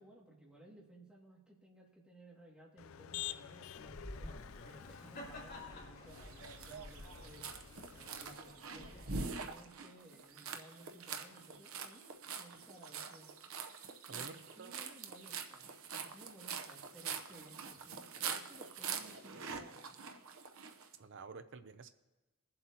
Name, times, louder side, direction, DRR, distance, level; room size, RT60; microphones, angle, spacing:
voice 1, 0.0-4.3 4.6-7.5 7.9-8.9 9.4-13.3 14.1-20.0, right 1 dB, 5° right, -4 dB, 2.2 m, -59 dB
Motor vehicle (road), 2.8-8.4, left 12 dB, 70° left, 0.4 m, -49 dB
sound 1, 3.7-9.3, equal, 50° left, 3.1 m, -49 dB
sound 2, 6.1-20.9, right 6 dB, 85° right, 0.8 m, -45 dB
voice 2, 21.0-21.9, right 4 dB, 60° right, 9 dB, 0.5 m, -50 dB
21.5 x 7.7 x 2.9 m, 1.1 s
head